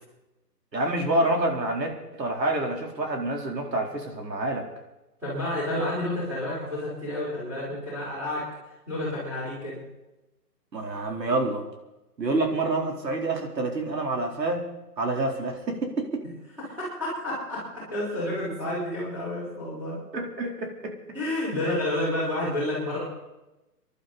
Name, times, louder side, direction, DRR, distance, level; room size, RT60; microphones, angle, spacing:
voice 1, 0.7-4.7 10.7-11.6 12.2-14.7 15.0-16.3 20.1-21.0, right 2 dB, 85° right, 2 dB, 4.3 m, -27 dB
voice 2, 5.2-8.5 8.9-9.8 16.6-20.0 21.1-23.0, left 1 dB, 5° right, -8 dB, 4.9 m, -30 dB
26.5 x 11.5 x 4.3 m, 0.99 s
hypercardioid pair, 175°, 49 cm